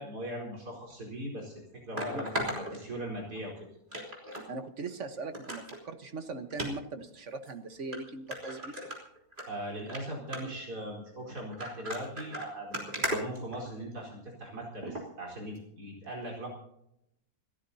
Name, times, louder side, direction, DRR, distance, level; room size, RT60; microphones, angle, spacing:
voice 1, 0.0-3.7 9.5-16.5, right 1 dB, 85° right, -2 dB, 5.0 m, -40 dB
sound 1, 0.9-1.0 2.0-3.4 3.9-4.5 4.8-4.9 5.3-5.8 6.5-6.7 7.4-7.5 7.9-8.0 8.3-9.4 9.8-10.0 10.3-10.6 11.4-14.0 14.8-15.0 15.6-15.7, right 1 dB, 30° right, 3.7 m, -36 dB
voice 2, 4.5-8.8, right 3 dB, 50° right, 8 dB, 1.6 m, -40 dB
28.0 x 14.0 x 2.8 m, 0.80 s
omnidirectional pair, 1.6 m